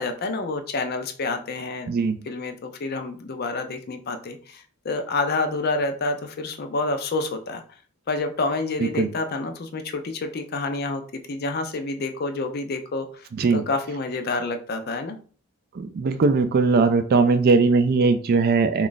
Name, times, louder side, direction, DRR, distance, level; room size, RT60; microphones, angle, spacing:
voice 1, 0.0-1.9 2.3-7.6 8.1-13.3 13.5-15.2, left 3 dB, 50° left, 7 dB, 0.5 m, -28 dB
voice 2, 13.3-13.6 15.7-18.9, right 4 dB, 45° right, 9 dB, 0.3 m, -20 dB
3.1 x 2.4 x 3.9 m, 0.42 s
head